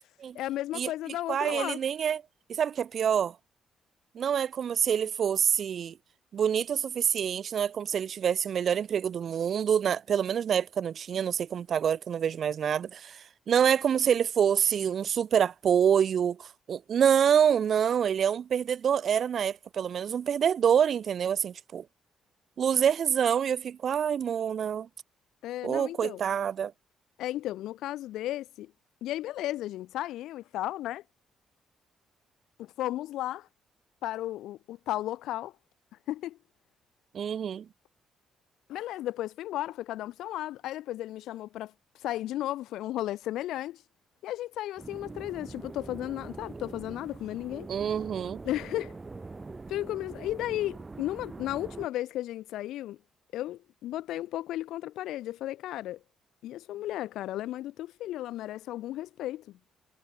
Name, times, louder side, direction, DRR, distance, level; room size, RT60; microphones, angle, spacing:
voice 1, 0.3-1.8 25.4-26.2 27.2-28.7 29.0-31.0 32.6-33.5 34.0-35.5 36.1-36.4 38.7-41.7 42.0-43.8 44.2-47.7 48.4-49.0 49.7-53.0 53.3-56.0 56.4-59.6, left 14 dB, 85° left, 2.5 m, -34 dB
voice 2, 1.3-2.2 2.5-3.3 4.1-5.9 6.3-21.8 22.6-24.9 25.6-26.7 37.1-37.6 47.7-48.4, right 8 dB, 55° right, 0.6 m, -26 dB
sound 1, 44.8-51.9, right 3 dB, 25° right, 4.0 m, -43 dB
cardioid pair, 90°, 0 cm